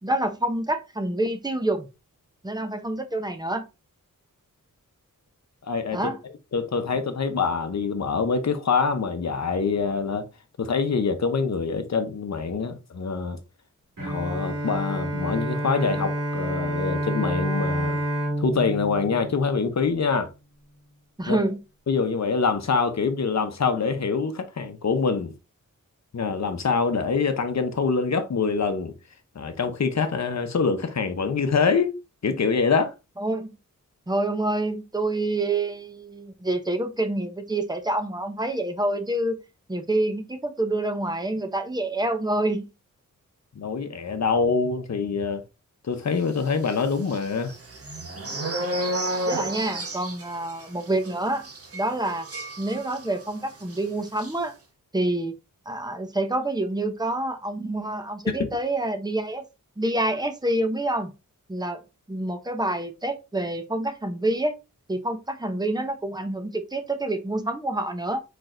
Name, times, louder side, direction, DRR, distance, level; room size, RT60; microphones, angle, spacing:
voice 1, 0.0-1.9 2.4-3.7 5.9-6.2 21.2-21.6 33.2-33.5 34.1-39.4 39.7-42.7 49.3-52.3 52.6-54.5 54.9-55.3 55.7-59.4 59.8-61.1 61.5-61.8 62.1-64.6 64.9-68.2, right 1 dB, 10° right, 0.7 m, -27 dB
voice 2, 5.6-6.1 6.5-10.3 10.6-13.4 14.0-18.0 18.4-20.3 21.3-21.4 21.9-25.3 26.1-28.9 29.3-31.9 32.2-32.9 43.5-45.4 45.8-47.5 58.3-58.4, left 5 dB, 55° left, 0.8 m, -25 dB
Bowed string instrument, 14.0-20.2, right 1 dB, 85° right, 2.6 m, -29 dB
sound 1, 46.6-53.3 53.6-53.8 54.1-54.3, right 1 dB, 45° right, 1.1 m, -32 dB
4.5 x 4.4 x 2.5 m
wide cardioid pair, 110°, 32 cm